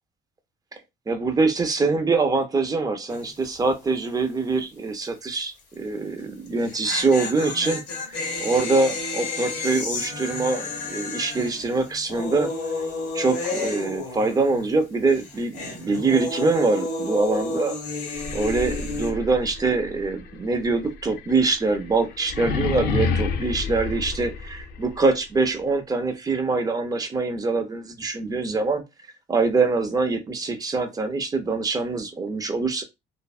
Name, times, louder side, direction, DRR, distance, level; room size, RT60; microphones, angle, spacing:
voice 1, 1.1-12.5 13.1-17.7 18.3-28.8 29.3-32.8, right 3 dB, 20° right, 0.5 m, -24 dB
sound 1, 3.1-3.5 3.7-3.8 6.5-14.8 15.1-19.1, left 3 dB, 85° left, 1.0 m, -31 dB
sound 2, 18.1-25.0, left 5 dB, 70° left, 0.4 m, -30 dB
2.5 x 2.1 x 2.3 m
cardioid pair, 110°, 17 cm